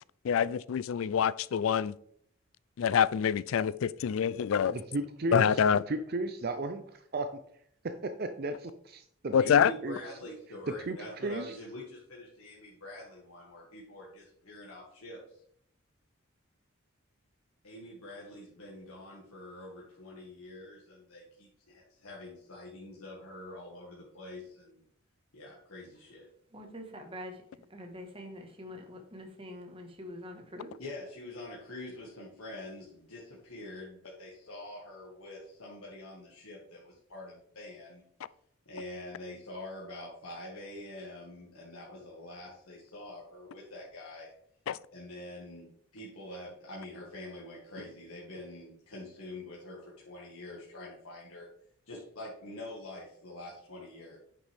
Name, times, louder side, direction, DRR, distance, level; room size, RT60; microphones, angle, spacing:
voice 1, 0.2-1.9 2.8-4.8 5.3-5.8 9.3-9.7 44.7-44.8, left 8 dB, 70° left, 0.3 m, -26 dB
voice 2, 4.7-5.6 5.9-7.3 8.0-9.6 9.8-10.0 10.9-11.0 11.2-11.6, right 2 dB, 45° right, 0.5 m, -34 dB
voice 3, 9.4-15.4 17.6-24.9 25.3-26.3 30.8-38.0 38.7-44.3 44.9-51.5 51.9-54.2, left 1 dB, 90° left, 1.9 m, -45 dB
voice 4, 26.5-27.4 27.7-30.7, left 1 dB, 25° right, 1.4 m, -45 dB
9.7 x 6.1 x 3.5 m
head